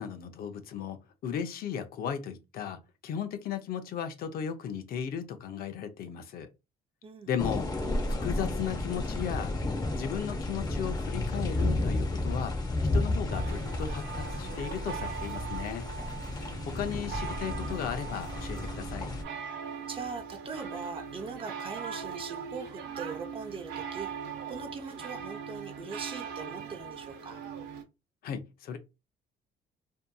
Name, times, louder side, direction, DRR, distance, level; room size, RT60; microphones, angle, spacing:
voice 1, 0.0-6.5 7.3-7.7 8.2-9.5 10.0-12.5 12.9-15.8 16.6-19.1 28.2-28.8, left 8 dB, 60° left, 0.5 m, -36 dB
voice 2, 7.0-7.6 16.5-17.3 19.9-24.1 24.5-27.4, right 5 dB, 30° right, 0.6 m, -41 dB
sound 1, 7.4-19.2, left 2 dB, 25° left, 0.7 m, -32 dB
sound 2, 13.3-27.8, right 7 dB, 90° right, 0.7 m, -40 dB
2.7 x 2.5 x 2.2 m
cardioid pair, 110°, 17 cm